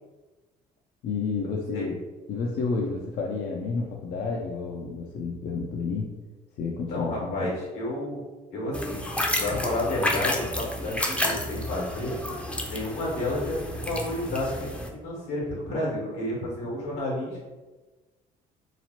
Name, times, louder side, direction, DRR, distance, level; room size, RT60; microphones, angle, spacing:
voice 1, 1.0-2.0 2.3-6.1 6.6-7.5, left 4 dB, 65° left, -1 dB, 0.4 m, -30 dB
voice 2, 6.9-8.2 8.5-9.0 9.4-11.0 11.2-12.2 12.6-17.4, left 1 dB, 85° left, -4 dB, 1.2 m, -31 dB
sound 1, 8.7-14.9, left 1 dB, 5° left, 0.4 m, -30 dB
2.9 x 2.0 x 2.8 m, 1.2 s
supercardioid pair, 65°, 18 cm